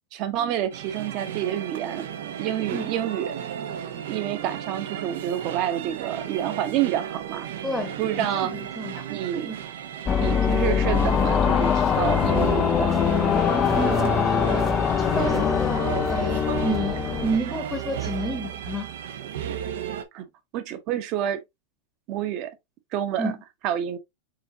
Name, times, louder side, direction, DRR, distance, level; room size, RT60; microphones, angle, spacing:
voice 1, 0.1-2.0 2.4-3.3 4.1-7.5 8.0-8.5 9.1-9.5 10.2-13.0 20.1-20.2 20.5-21.4 22.1-22.5 22.9-23.3 23.6-24.0, right 11 dB, 45° right, 0.9 m, -28 dB
sound 1, 0.7-20.0, right 9 dB, 75° right, 0.7 m, -34 dB
voice 2, 7.6-9.0 9.4-9.6 13.8-14.6 15.0-16.9 17.2-18.9 23.2-23.3, right 1 dB, 5° left, 0.9 m, -30 dB
sound 2, 10.1-17.4, left 7 dB, 25° left, 0.4 m, -22 dB
4.8 x 3.9 x 2.7 m
supercardioid pair, 145°, 0 cm